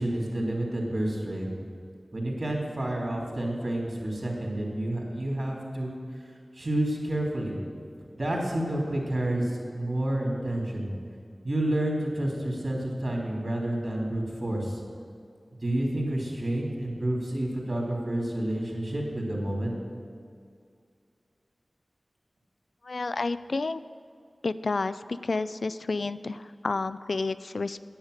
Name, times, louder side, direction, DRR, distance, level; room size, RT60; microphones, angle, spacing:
voice 1, 0.0-1.5 2.1-6.0 6.5-7.6 8.2-10.9 11.4-14.8 15.6-19.7, right 1 dB, 50° right, -2 dB, 2.9 m, -29 dB
voice 2, 22.8-23.8 24.4-27.8, left 3 dB, 75° left, 13 dB, 0.3 m, -30 dB
10.0 x 8.8 x 6.5 m, 2.3 s
wide cardioid pair, 60°, 0 cm